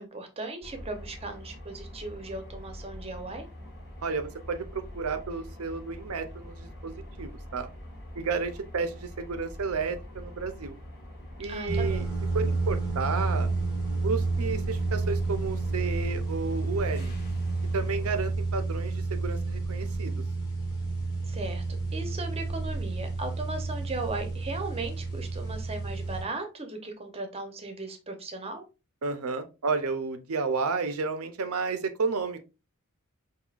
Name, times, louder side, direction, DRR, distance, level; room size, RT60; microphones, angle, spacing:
voice 1, 0.0-3.5 11.5-12.0 21.3-21.6 21.9-28.6, right 2 dB, 25° right, 6 dB, 0.7 m, -37 dB
sound 1, 0.6-18.3, equal, 50° left, 1.1 m, -44 dB
voice 2, 4.0-7.7 8.1-10.7 11.4-13.5 14.0-17.1 17.7-20.2 29.0-32.4, right 4 dB, 70° right, 9 dB, 0.6 m, -32 dB
sound 2, 11.7-26.2, right 3 dB, 20° left, 1.2 m, -30 dB
5.4 x 2.7 x 2.4 m, 0.29 s
head